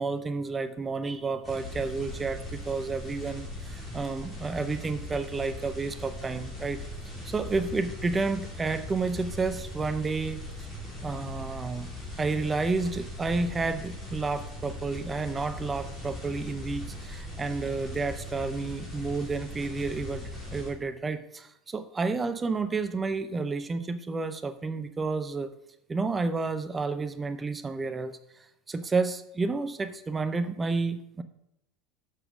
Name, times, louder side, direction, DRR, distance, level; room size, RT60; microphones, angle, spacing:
voice 1, 0.0-6.8 7.2-10.4 11.0-11.9 12.2-25.5 25.9-28.2 28.7-31.2, right 4 dB, 15° right, 11 dB, 0.5 m, -31 dB
sound 1, 1.4-20.7, left 1 dB, 15° left, 3.2 m, -39 dB
7.2 x 6.7 x 6.1 m, 0.82 s
supercardioid pair, 130°, 0 cm